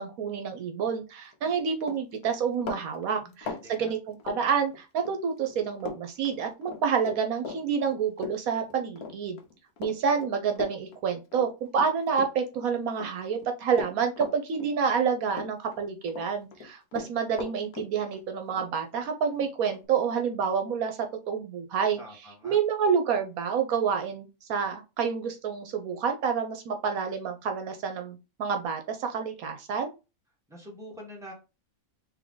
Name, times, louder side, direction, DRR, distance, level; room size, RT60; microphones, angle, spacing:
voice 1, 0.0-9.4 9.8-21.0 21.3-29.9, right 6 dB, 75° right, 6 dB, 1.1 m, -28 dB
Run, 1.3-1.5 1.8-5.2 5.4-6.0 6.3-12.6 12.9-15.1 15.3-16.3 16.5-19.9, left 5 dB, 80° left, 1.3 m, -39 dB
voice 2, 3.2-3.9 22.0-22.6 30.5-31.3, equal, ahead, -3 dB, 1.6 m, -45 dB
3.6 x 3.2 x 3.8 m, 0.28 s
omnidirectional pair, 1.5 m